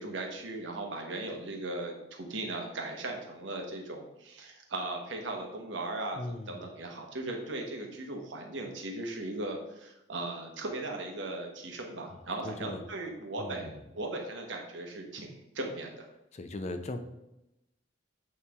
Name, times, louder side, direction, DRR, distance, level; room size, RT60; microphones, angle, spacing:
voice 1, 0.0-16.1, right 2 dB, 80° right, 2 dB, 1.1 m, -38 dB
voice 2, 6.1-6.6 12.1-12.8 13.4-13.8 16.3-17.0, left 2 dB, 35° left, 8 dB, 0.5 m, -39 dB
8.3 x 3.2 x 3.5 m, 0.90 s
head